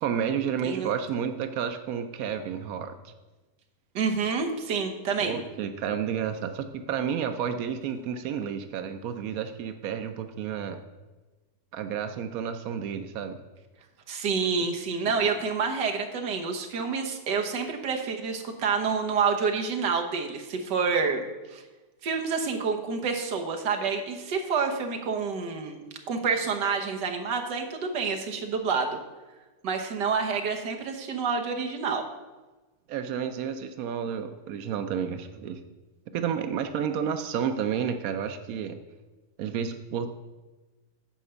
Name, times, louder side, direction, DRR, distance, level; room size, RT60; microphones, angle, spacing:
voice 1, 0.0-3.1 5.2-10.8 11.7-13.4 32.9-35.6 36.1-38.8 39.4-40.1, right 8 dB, 90° right, 8 dB, 0.7 m, -31 dB
voice 2, 4.0-5.4 14.1-21.2 21.5-21.6 22.0-25.8 26.1-29.0 29.6-32.0, right 5 dB, 65° right, 3 dB, 1.6 m, -28 dB
8.8 x 5.0 x 6.8 m, 1.2 s
omnidirectional pair, 2.2 m